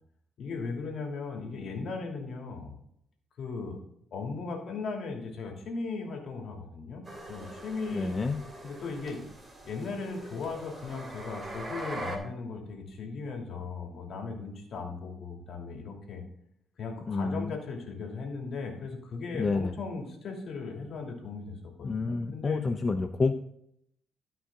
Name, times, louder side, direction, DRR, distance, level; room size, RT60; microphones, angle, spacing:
voice 1, 0.4-2.7 3.4-3.8 4.1-7.0 7.3-8.1 8.6-9.2 9.6-16.2 16.8-22.6, left 4 dB, 60° left, 1 dB, 2.7 m, -37 dB
sound 1, 7.1-12.2, right 1 dB, 20° right, 2.7 m, -42 dB
voice 2, 7.9-8.4 17.1-17.6 19.3-19.7 21.8-23.3, left 4 dB, 35° left, 6 dB, 0.6 m, -29 dB
13.5 x 5.7 x 3.7 m, 0.73 s
cardioid pair, 90°, 0 cm